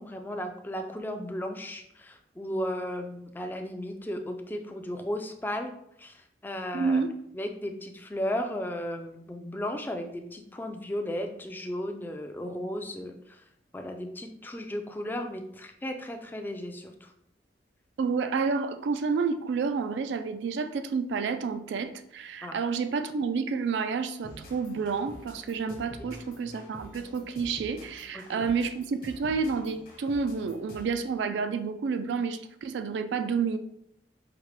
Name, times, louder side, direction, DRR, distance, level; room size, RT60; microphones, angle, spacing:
voice 1, 0.0-5.7 6.0-7.0 7.3-13.4 13.7-17.1 22.4-22.6 28.1-28.5, left 1 dB, 10° left, 4 dB, 0.3 m, -35 dB
voice 2, 6.7-7.1 18.0-33.6, right 5 dB, 80° right, 9 dB, 0.3 m, -29 dB
sound 1, 24.2-31.1, equal, 55° left, 1.1 m, -48 dB
4.8 x 2.1 x 3.2 m, 0.76 s
head